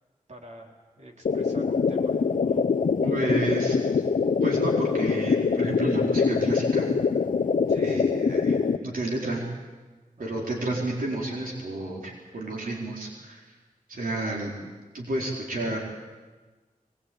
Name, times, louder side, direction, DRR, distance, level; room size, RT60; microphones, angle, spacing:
voice 1, 0.3-2.8 3.2-4.1 7.7-8.2 10.2-10.4, equal, 55° right, 0 dB, 4.1 m, -48 dB
sound 1, 1.3-8.8, left 5 dB, 65° left, 0.8 m, -24 dB
voice 2, 3.0-3.8 4.4-6.9 7.7-8.6 8.8-9.5 10.2-13.4 13.9-14.6 14.9-15.8, right 1 dB, 85° right, -2 dB, 4.2 m, -30 dB
23.0 x 20.5 x 8.7 m, 1.3 s
wide cardioid pair, 90°, 14 cm